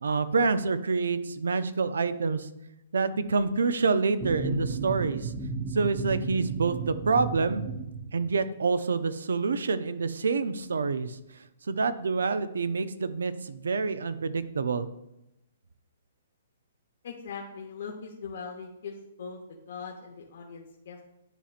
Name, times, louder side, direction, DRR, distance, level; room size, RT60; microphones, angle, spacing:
voice 1, 0.0-2.5 2.9-5.3 5.7-7.6 8.1-11.2 11.7-14.9, right 4 dB, 85° right, 13 dB, 0.5 m, -27 dB
sound 1, 4.2-8.5, right 4 dB, 25° right, 0.5 m, -34 dB
voice 2, 17.0-21.0, left 5 dB, 65° left, 1 dB, 0.9 m, -41 dB
10.0 x 4.3 x 2.5 m, 0.87 s
hypercardioid pair, 145°, 0 cm